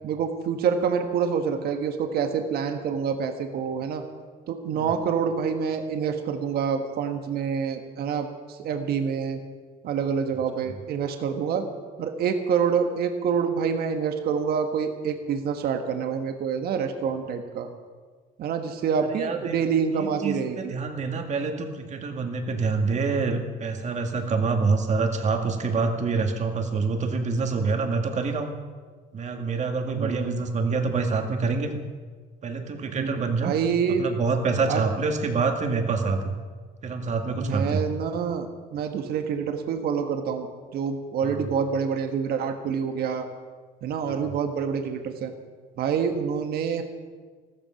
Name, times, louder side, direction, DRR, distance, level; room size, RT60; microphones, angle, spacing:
voice 1, 0.0-4.0 4.5-9.4 9.8-11.7 12.0-17.7 18.4-20.7 29.9-30.4 32.9-34.0 34.7-34.8 37.3-40.5 40.7-43.3 43.8-45.3 45.8-46.8, right 6 dB, 65° right, 6 dB, 1.4 m, -27 dB
voice 2, 19.0-19.6 19.9-28.5 29.1-31.8 32.4-33.5 34.0-36.4 36.8-37.8 41.2-41.4 44.0-44.2, right 4 dB, 45° right, 4 dB, 2.0 m, -26 dB
14.0 x 14.0 x 5.8 m, 1.5 s
cardioid pair, 110°, 17 cm